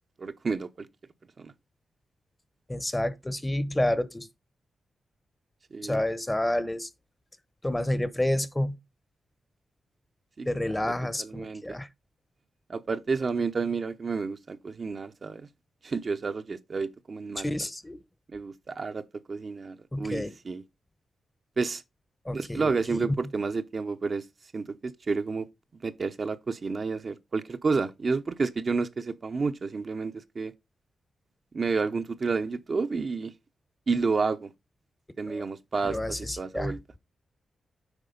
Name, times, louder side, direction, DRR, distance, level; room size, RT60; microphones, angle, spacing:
voice 1, 0.2-0.9 1.4-1.5 5.7-6.0 10.4-10.8 11.2-11.6 12.7-15.4 15.8-17.5 18.3-19.0 19.3-20.6 21.6-21.8 22.3-24.2 24.5-25.5 25.7-30.5 31.5-33.3 33.9-34.5 35.2-36.0 36.4-36.8, right 4 dB, 55° right, 0.7 m, -30 dB
voice 2, 2.7-4.3 5.8-6.9 7.6-8.8 10.4-11.9 17.4-18.0 19.9-20.3 22.2-23.1 35.3-35.4 35.8-36.7, left 1 dB, 15° left, 0.9 m, -29 dB
8.1 x 4.9 x 3.8 m
supercardioid pair, 50°, 0 cm